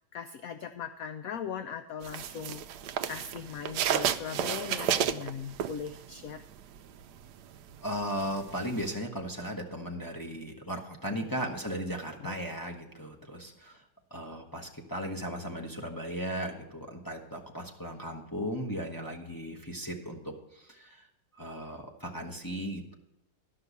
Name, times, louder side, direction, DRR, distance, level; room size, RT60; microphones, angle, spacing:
voice 1, 0.1-2.6 3.1-6.4 11.2-11.3 12.2-12.3, left 7 dB, 70° left, 9 dB, 0.8 m, -39 dB
sound 1, 2.0-6.2 6.6-8.9, right 9 dB, 70° right, 1.1 m, -31 dB
voice 2, 7.8-13.8 14.1-21.0 21.4-22.9, equal, 15° left, 0 dB, 1.1 m, -36 dB
12.5 x 5.8 x 8.2 m, 0.88 s
omnidirectional pair, 2.1 m